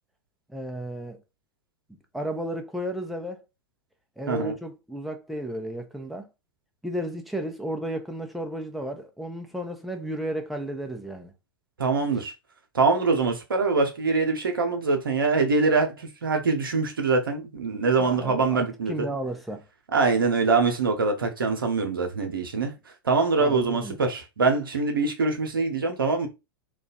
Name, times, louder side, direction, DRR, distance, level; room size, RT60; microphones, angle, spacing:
voice 1, 0.5-1.2 2.1-3.4 4.2-6.3 6.8-11.3 18.0-19.6 22.2-22.3 23.4-24.0, right 1 dB, ahead, 0.7 m, -33 dB
voice 2, 11.8-12.3 12.7-19.1 19.9-22.7 23.0-26.3, right 4 dB, 75° right, 0.9 m, -24 dB
3.1 x 2.4 x 4.0 m
figure-of-eight pair, 90°, 12 cm